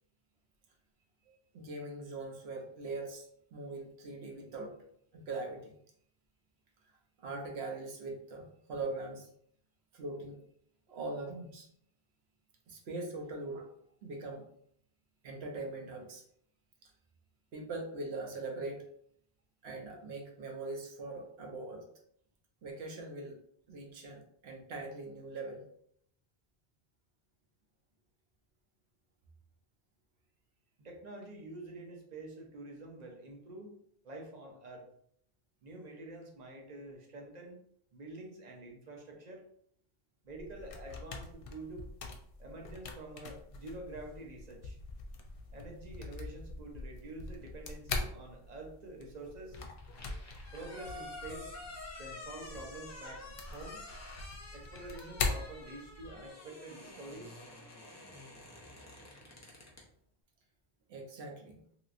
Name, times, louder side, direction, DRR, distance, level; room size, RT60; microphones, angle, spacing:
voice 1, 1.5-4.7 5.1-5.7 7.2-9.3 9.9-10.4 10.9-11.7 12.7-13.7 14.0-14.4 15.2-16.2 16.8-16.9 17.5-18.8 19.6-21.8 22.6-23.4 23.7-25.6 60.9-61.6, right 2 dB, 75° right, 2 dB, 0.9 m, -41 dB
voice 2, 30.8-33.8 34.0-34.9 35.6-37.6 37.9-39.5 40.2-41.9 42.4-44.8 45.5-49.6 50.5-51.5 52.0-53.8 54.5-57.4, right 2 dB, 45° right, 1 dB, 0.7 m, -47 dB
sound 1, 40.3-56.2, left 3 dB, 65° left, 0.7 m, -43 dB
sound 2, 49.6-59.9, left 2 dB, 20° left, 0.5 m, -49 dB
3.0 x 2.9 x 2.4 m, 0.66 s
omnidirectional pair, 1.1 m